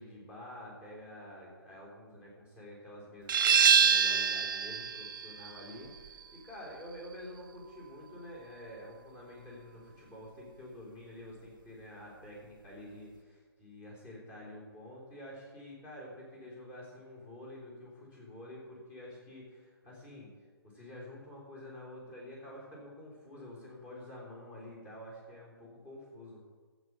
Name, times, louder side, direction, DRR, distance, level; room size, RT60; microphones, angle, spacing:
voice 1, 0.0-20.3 20.6-26.4, left 1 dB, 15° left, -5 dB, 3.6 m, -48 dB
sound 1, 3.3-8.7, right 7 dB, 55° right, 1.0 m, -28 dB
13.5 x 7.8 x 6.1 m, 1.5 s
hypercardioid pair, 160°, 13 cm